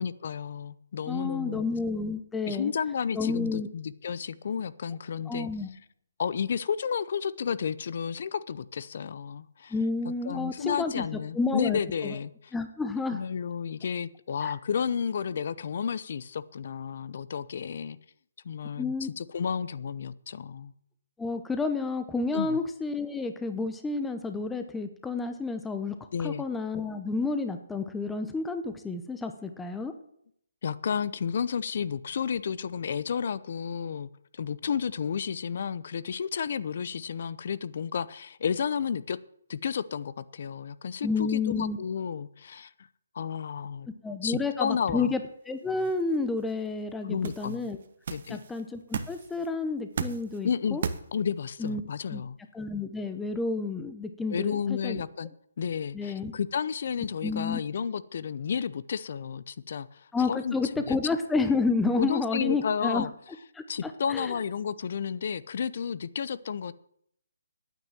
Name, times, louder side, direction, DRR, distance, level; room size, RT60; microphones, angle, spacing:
voice 1, 0.0-1.6 2.5-5.5 6.2-9.7 10.2-12.5 13.1-18.0 18.4-20.7 22.3-22.6 26.1-26.4 30.6-39.2 39.5-42.7 43.1-43.9 44.2-45.1 47.0-47.7 48.1-48.4 50.4-50.8 51.1-52.4 54.3-55.3 55.6-60.5 60.9-61.0 62.0-63.1 63.7-66.7, left 7 dB, 50° left, 17 dB, 0.7 m, -32 dB
voice 2, 1.1-2.7 3.1-3.7 5.3-5.7 9.7-11.1 11.3-12.1 12.5-13.2 18.8-19.1 21.2-25.9 26.2-29.9 41.0-41.8 44.0-45.2 45.5-47.8 48.3-50.8 51.6-51.8 52.1-52.2 52.5-55.0 55.9-56.3 57.2-57.6 60.1-63.0 63.5-64.3, left 3 dB, 5° left, 7 dB, 0.9 m, -30 dB
sound 1, 45.5-51.7, right 6 dB, 50° right, 1.3 m, -38 dB
9.2 x 9.2 x 9.0 m, 0.70 s
hypercardioid pair, 160°, 0 cm